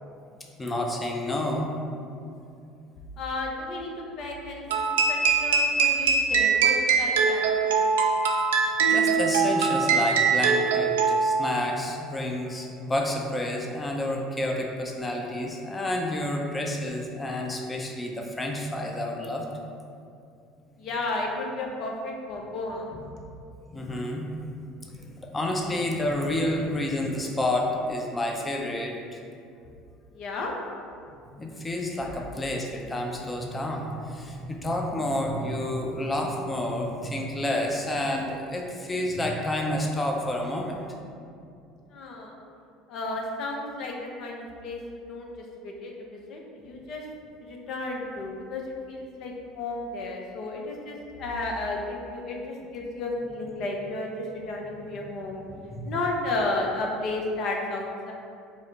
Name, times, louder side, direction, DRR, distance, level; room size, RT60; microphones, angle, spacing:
voice 1, 0.6-1.7 8.2-8.5 8.8-10.9 11.2-19.5 23.7-24.7 24.9-29.2 31.3-40.8 54.9-55.1 55.5-56.0, left 1 dB, 20° left, 0 dB, 0.7 m, -30 dB
voice 2, 3.2-8.1 20.8-22.9 30.1-30.5 41.9-42.3 42.9-45.3 45.6-47.0 47.4-55.4 55.8-58.1, left 2 dB, 55° left, 0 dB, 0.7 m, -33 dB
sound 1, 4.7-11.5, right 5 dB, 80° right, 0.4 m, -22 dB
4.8 x 2.1 x 4.0 m, 2.4 s
hypercardioid pair, 65°, 0 cm